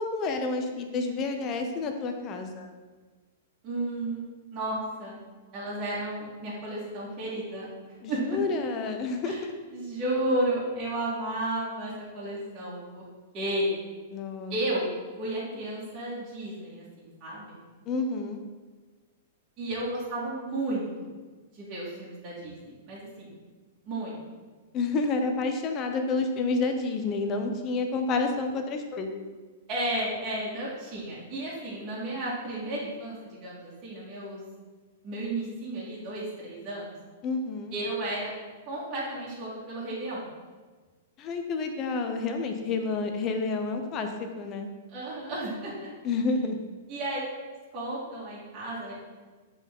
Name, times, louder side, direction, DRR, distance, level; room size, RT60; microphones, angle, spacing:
voice 1, 0.0-2.7 8.0-9.5 14.1-14.5 17.9-18.4 24.7-29.2 37.2-37.7 41.2-44.1 44.4-44.7 46.0-46.6, left 3 dB, 30° left, 5 dB, 0.7 m, -29 dB
voice 2, 3.6-5.2 5.5-8.4 9.2-9.4 9.7-13.0 13.3-13.7 14.5-14.9 15.2-17.6 19.6-21.1 21.5-23.3 23.9-24.2 29.7-34.4 35.0-36.9 37.7-38.3 38.6-40.3 44.9-45.9 46.9-47.2 47.7-48.9, right 1 dB, 35° right, -8 dB, 1.9 m, -33 dB
6.9 x 4.0 x 3.7 m, 1.3 s
hypercardioid pair, 145°, 0 cm